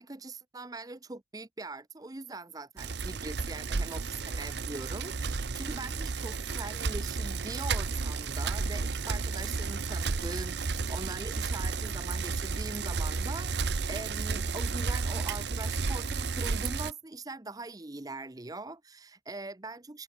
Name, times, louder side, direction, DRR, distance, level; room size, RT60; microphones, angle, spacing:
voice 1, 0.0-20.0, right 2 dB, 20° right, 0.7 m, -42 dB
Bicycle, 2.8-16.9, right 4 dB, 65° right, 0.8 m, -32 dB
head